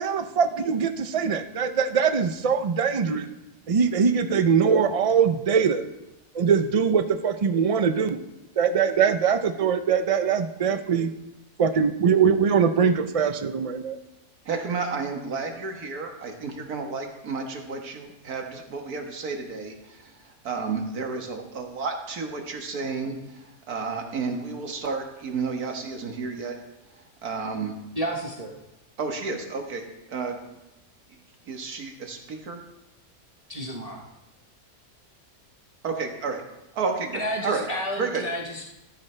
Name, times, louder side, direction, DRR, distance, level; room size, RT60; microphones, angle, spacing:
voice 1, 0.0-3.3 3.7-5.8 6.3-8.2 8.6-11.1 11.6-14.0, right 6 dB, 55° right, 9 dB, 0.3 m, -22 dB
voice 2, 14.5-20.2 20.4-26.6 27.2-27.8 29.0-30.4 31.5-32.6 35.8-36.4 36.7-37.7 38.0-38.2, right 4 dB, 85° right, 3 dB, 1.9 m, -31 dB
voice 3, 27.9-28.5 33.5-34.0 37.1-38.7, equal, 30° right, -1 dB, 1.0 m, -31 dB
13.0 x 11.5 x 3.3 m, 0.95 s
omnidirectional pair, 1.5 m